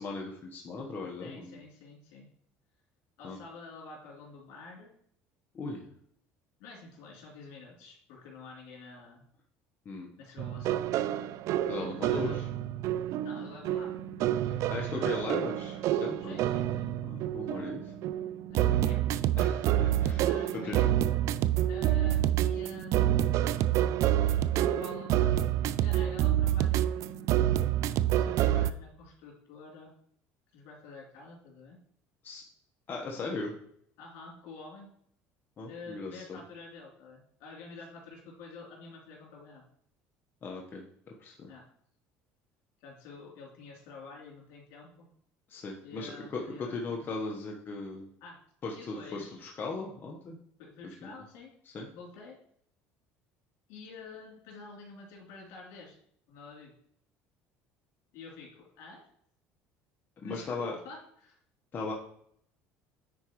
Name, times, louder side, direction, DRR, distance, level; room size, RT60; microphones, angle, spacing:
voice 1, 0.0-1.6 3.2-3.4 5.5-5.9 9.8-10.1 11.7-12.4 14.7-16.4 17.0-17.9 19.3-20.3 20.6-20.9 32.2-32.4 32.9-33.5 35.6-36.4 40.4-40.8 41.2-41.5 45.5-48.1 48.6-50.4 51.0-51.2 51.7-51.9 60.2-60.8 61.7-61.9, left 3 dB, 35° left, 0 dB, 1.2 m, -38 dB
voice 2, 1.2-2.3 3.2-4.9 6.6-9.3 10.2-10.8 11.5-11.7 12.1-12.5 13.2-14.0 14.4-15.2 16.2-16.9 18.5-19.0 20.2-20.9 21.7-23.2 24.5-25.4 25.8-27.5 28.1-29.9 30.5-31.8 34.0-34.9 35.7-39.6 41.5-41.6 42.8-45.1 45.8-47.0 48.2-48.4 48.7-49.4 50.6-51.5 51.9-52.4 53.7-56.0 56.3-56.7 58.1-59.0 60.2-61.4, left 4 dB, 75° left, -3 dB, 3.2 m, -48 dB
sound 1, 10.4-28.7, right 12 dB, 60° right, 0.4 m, -28 dB
10.0 x 4.5 x 3.1 m, 0.66 s
supercardioid pair, 105°, 6 cm